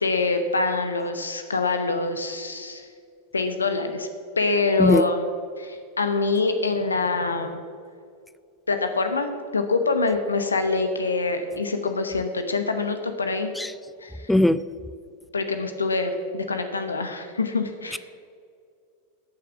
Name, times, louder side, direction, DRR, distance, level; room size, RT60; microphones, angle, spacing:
voice 1, 0.0-2.9 3.3-4.1 4.4-5.3 5.6-7.6 8.7-13.5 14.0-14.3 15.3-18.0, left 3 dB, 75° left, 7 dB, 1.0 m, -25 dB
voice 2, 14.3-14.6 17.9-18.0, left 1 dB, 5° left, 15 dB, 0.3 m, -19 dB
14.5 x 8.4 x 6.0 m, 2.3 s
figure-of-eight pair, 90°, 0 cm